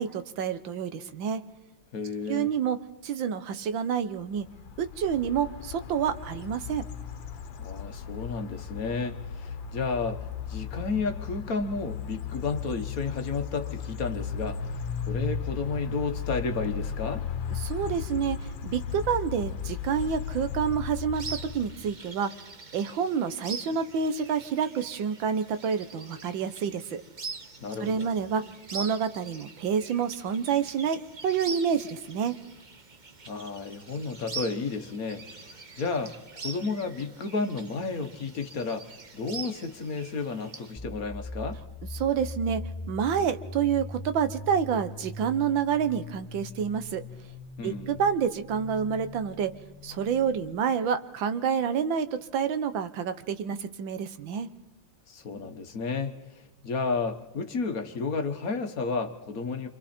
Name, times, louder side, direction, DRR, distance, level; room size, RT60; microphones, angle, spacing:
voice 1, 0.0-1.4 2.3-2.8 3.0-4.5 4.8-6.8 17.6-18.4 18.6-21.2 21.5-22.3 22.7-27.0 27.8-28.4 28.7-32.4 41.9-42.6 42.9-47.0 47.6-49.5 49.8-54.5, right 7 dB, 85° right, 11 dB, 1.7 m, -28 dB
voice 2, 1.9-2.5 7.6-10.2 10.5-14.8 15.1-17.2 27.6-28.1 33.3-36.2 36.4-38.9 39.1-41.6 47.6-48.0 55.1-56.2 56.6-59.7, left 4 dB, 50° left, 7 dB, 1.6 m, -32 dB
sound 1, 4.3-21.9, left 6 dB, 80° left, 1.8 m, -36 dB
sound 2, 21.1-40.7, right 4 dB, 30° right, 1.0 m, -44 dB
sound 3, 40.8-50.5, left 2 dB, 5° left, 5.3 m, -41 dB
28.5 x 26.5 x 4.4 m, 1.0 s
omnidirectional pair, 2.0 m